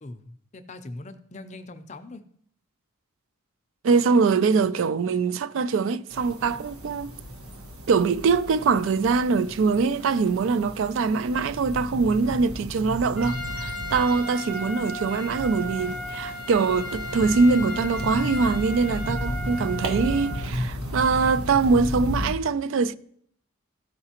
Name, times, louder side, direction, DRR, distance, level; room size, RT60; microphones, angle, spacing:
voice 1, 0.0-2.2, left 2 dB, 35° left, 0.5 m, -41 dB
voice 2, 3.8-7.1 7.9-22.9, right 4 dB, 65° right, 0.3 m, -23 dB
sound 1, 6.1-22.3, equal, 85° right, 1.1 m, -34 dB
Trumpet, 13.2-20.5, equal, 40° right, 1.4 m, -35 dB
13.5 x 4.8 x 2.9 m
head